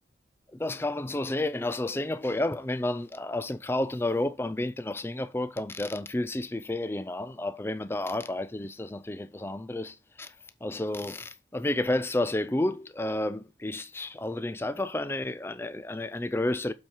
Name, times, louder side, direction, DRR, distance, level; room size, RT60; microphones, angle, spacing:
voice 1, 0.5-10.3 10.6-16.7, left 1 dB, 15° left, 0.4 m, -31 dB
7.4 x 4.5 x 4.6 m
head